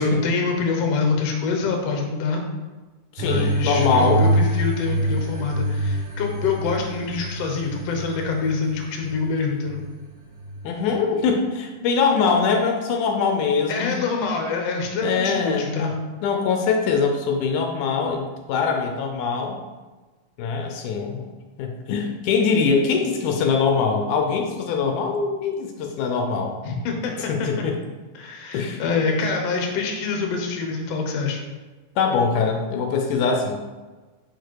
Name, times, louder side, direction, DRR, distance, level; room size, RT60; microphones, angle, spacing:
voice 1, 0.0-2.4 3.2-9.8 13.7-15.9 26.6-27.6 28.2-31.4, left 4 dB, 65° left, 2 dB, 1.8 m, -25 dB
voice 2, 3.1-4.3 10.6-14.0 15.0-15.9 16.2-19.6 20.4-21.3 21.6-26.6 27.3-27.8 28.5-28.8 32.0-33.6, left 5 dB, 80° left, 3 dB, 2.1 m, -22 dB
sound 1, 3.2-11.2, right 1 dB, 80° right, 1.1 m, -26 dB
4.9 x 4.8 x 4.6 m, 1.3 s
omnidirectional pair, 3.5 m